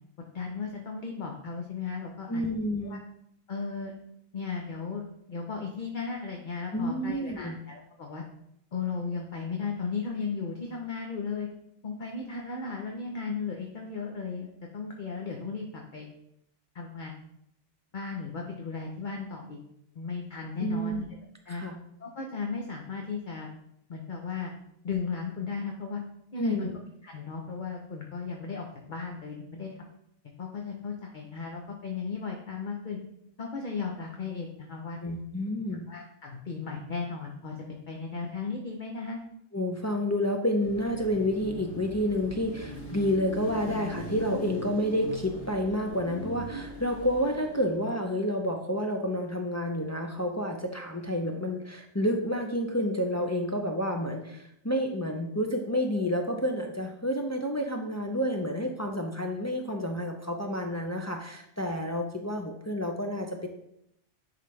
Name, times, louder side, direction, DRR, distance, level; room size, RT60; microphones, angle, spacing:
voice 1, 0.3-2.4 2.8-3.0 3.5-3.9 4.3-5.0 5.3-8.2 8.7-11.5 11.8-15.7 15.9-16.1 16.7-17.2 17.9-19.6 19.9-21.1 21.5-21.6 22.0-23.5 23.9-24.5 24.8-26.0 26.3-26.7 27.0-29.9 30.4-33.0 33.4-35.0 35.9-39.2, left 5 dB, 45° left, 1 dB, 0.8 m, -35 dB
voice 2, 2.3-3.0 6.7-7.6 20.6-21.0 21.5-21.8 26.4-26.7 35.0-35.9 39.5-63.5, equal, 25° left, 2 dB, 0.4 m, -29 dB
Car passing by / Traffic noise roadway noise / Engine, 40.6-47.9, equal, 65° left, 2.3 m, -40 dB
10.0 x 4.0 x 3.2 m, 0.76 s
omnidirectional pair, 1.2 m